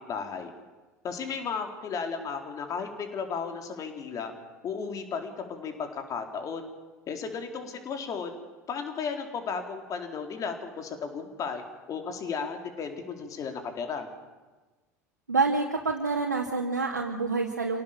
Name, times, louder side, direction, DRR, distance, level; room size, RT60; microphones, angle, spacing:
voice 1, 0.1-0.5 1.0-4.3 4.6-6.7 7.1-8.3 8.7-11.6 11.9-14.1, left 5 dB, 40° left, 5 dB, 4.2 m, -34 dB
voice 2, 15.3-17.8, right 3 dB, 85° right, -1 dB, 2.5 m, -27 dB
27.5 x 18.0 x 7.4 m, 1.3 s
figure-of-eight pair, 75°, 9 cm